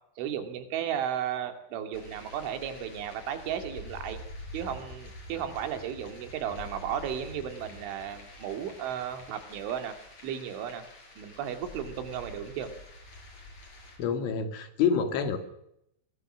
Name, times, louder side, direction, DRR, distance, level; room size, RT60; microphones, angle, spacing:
voice 1, 0.2-4.2 4.5-9.9 10.2-10.8 11.2-12.7, right 9 dB, 85° right, 7 dB, 4.8 m, -34 dB
sound 1, 1.9-14.0, left 1 dB, 35° left, 7.6 m, -47 dB
voice 2, 14.0-15.4, left 6 dB, 85° left, 8 dB, 4.7 m, -27 dB
24.0 x 22.0 x 6.2 m, 0.79 s
omnidirectional pair, 5.3 m